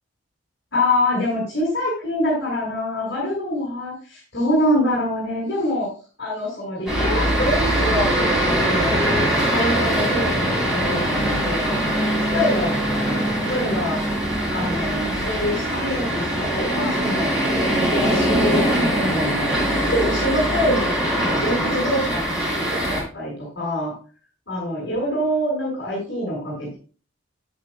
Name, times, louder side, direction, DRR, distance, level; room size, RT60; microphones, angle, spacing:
voice 1, 0.7-5.9 6.2-11.7 12.3-13.2 13.5-14.0 14.5-17.3 17.7-18.7 18.9-19.5 19.8-23.9 24.5-26.8, left 1 dB, 60° left, -6 dB, 5.7 m, -25 dB
sound 1, 6.9-23.0, right 1 dB, 5° right, 3.8 m, -22 dB
11.0 x 9.2 x 2.3 m, 0.36 s
head